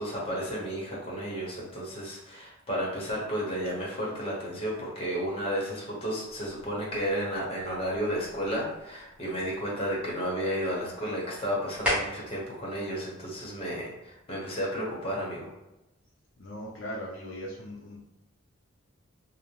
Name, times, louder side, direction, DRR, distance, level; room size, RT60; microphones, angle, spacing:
voice 1, 0.0-15.5, equal, 30° left, -5 dB, 0.8 m, -32 dB
sound 1, 6.2-14.2, left 1 dB, 5° right, 0.8 m, -39 dB
voice 2, 16.4-18.0, equal, 65° left, -4 dB, 0.5 m, -39 dB
2.6 x 2.0 x 3.0 m, 0.96 s
head